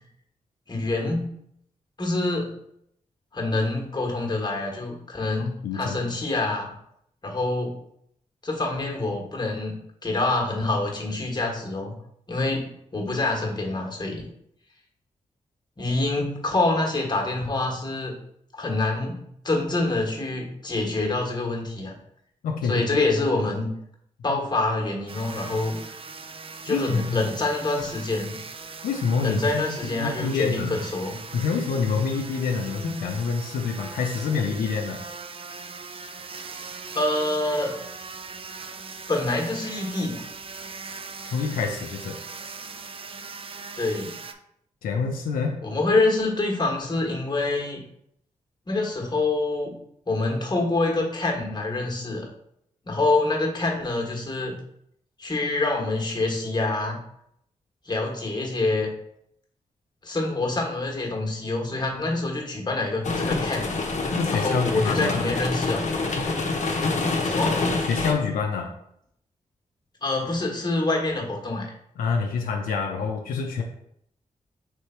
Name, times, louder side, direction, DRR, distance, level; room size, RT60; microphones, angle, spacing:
voice 1, 0.7-1.3 2.0-2.5 3.3-6.7 7.2-7.7 8.4-11.9 12.3-14.3 15.8-18.1 18.5-21.9 22.6-23.7 24.2-25.8 26.6-28.4 29.2-31.2 36.9-37.7 39.1-40.2 43.8-44.1 45.6-47.8 48.7-49.8 50.1-52.3 52.9-54.6 55.2-57.0 57.8-58.9 60.0-63.7 64.3-66.0 67.2-67.6 70.0-71.7, left 2 dB, 30° left, 0 dB, 1.4 m, -26 dB
voice 2, 5.6-6.1 22.4-22.9 24.3-24.4 26.7-27.3 28.8-30.8 31.3-35.0 41.2-42.2 44.8-45.6 64.2-65.2 67.8-68.7 72.0-73.6, left 5 dB, 90° left, 2 dB, 0.5 m, -27 dB
sound 1, 25.1-44.3, right 4 dB, 40° right, 0.4 m, -40 dB
sound 2, 63.0-68.1, left 3 dB, 55° left, 0.8 m, -26 dB
3.4 x 3.1 x 4.4 m, 0.73 s
supercardioid pair, 45°, 14 cm